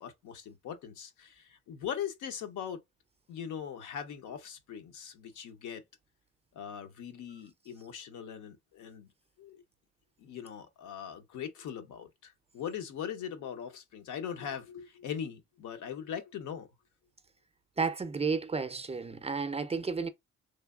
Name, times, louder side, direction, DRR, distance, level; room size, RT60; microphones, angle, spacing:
voice 1, 0.0-2.8 3.3-5.8 6.5-9.1 9.4-9.6 10.2-16.7 17.8-17.9, left 8 dB, 80° left, 0.8 m, -40 dB
voice 2, 17.8-20.1, right 4 dB, 20° right, 0.4 m, -32 dB
3.2 x 2.3 x 2.3 m
cardioid pair, 90°, 30 cm